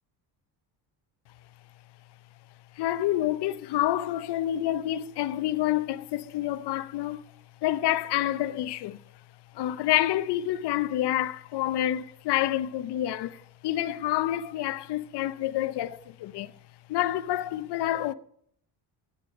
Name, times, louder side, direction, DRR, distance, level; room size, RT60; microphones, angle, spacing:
voice 1, 2.8-7.2 7.6-9.0 9.5-16.5 16.9-18.1, left 13 dB, 70° left, 0.9 m, -28 dB
13.5 x 9.7 x 5.2 m
cardioid pair, 140°, 41 cm